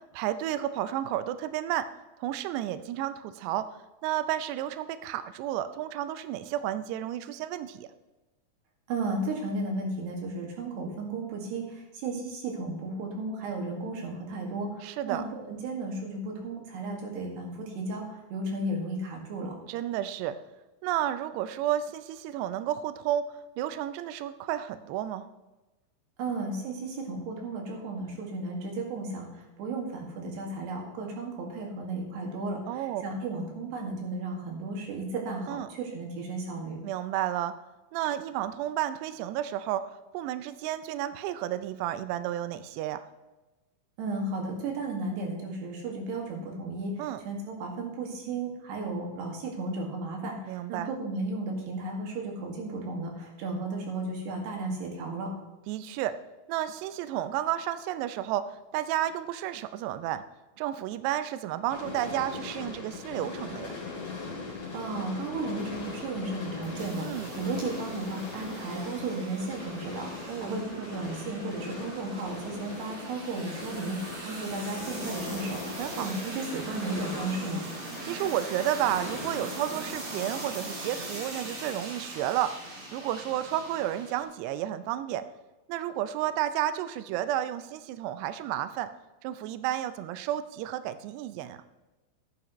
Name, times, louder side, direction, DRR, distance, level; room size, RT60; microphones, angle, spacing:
voice 1, 0.1-1.9 2.2-3.7 4.0-7.9 14.8-15.2 19.7-20.4 20.8-25.3 32.7-33.0 35.5-35.7 36.8-37.6 37.9-43.1 47.0-47.2 50.5-50.9 55.7-56.2 56.5-60.2 60.6-63.7 67.0-67.3 70.3-70.5 75.8-76.1 78.0-82.6 82.9-85.2 85.7-88.9 89.2-91.6, right 12 dB, 90° right, 12 dB, 2.4 m, -31 dB
voice 2, 8.9-19.5 26.2-36.8 44.0-46.9 47.3-55.3 64.7-67.1 67.4-77.7, right 2 dB, 65° right, 1 dB, 3.8 m, -34 dB
sound 1, 61.7-79.9, left 4 dB, 35° left, 2.6 m, -40 dB
sound 2, 65.6-84.2, right 2 dB, 50° right, 5.1 m, -41 dB
13.5 x 11.0 x 3.1 m, 1.1 s
omnidirectional pair, 5.5 m